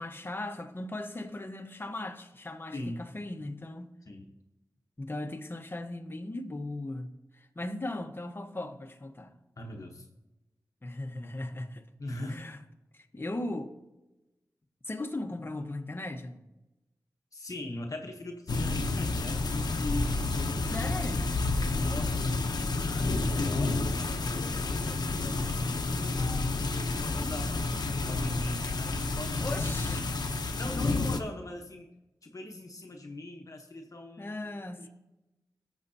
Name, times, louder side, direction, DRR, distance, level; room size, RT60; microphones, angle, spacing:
voice 1, 0.0-3.9 5.0-9.3 10.8-11.9 12.3-12.6 12.9-13.7 14.8-16.4 20.7-21.3 29.4-30.1 34.2-34.9, left 2 dB, 30° left, 1.1 m, -38 dB
voice 2, 2.7-3.1 4.1-4.3 9.6-10.0 12.0-12.4 17.3-20.8 21.6-26.3 26.7-30.1 30.5-31.9 32.2-34.4 34.8-34.9, left 1 dB, 55° left, 1.0 m, -41 dB
sound 1, 18.5-31.2, left 3 dB, 80° left, 0.8 m, -30 dB
18.5 x 7.3 x 2.8 m
wide cardioid pair, 60°, 7 cm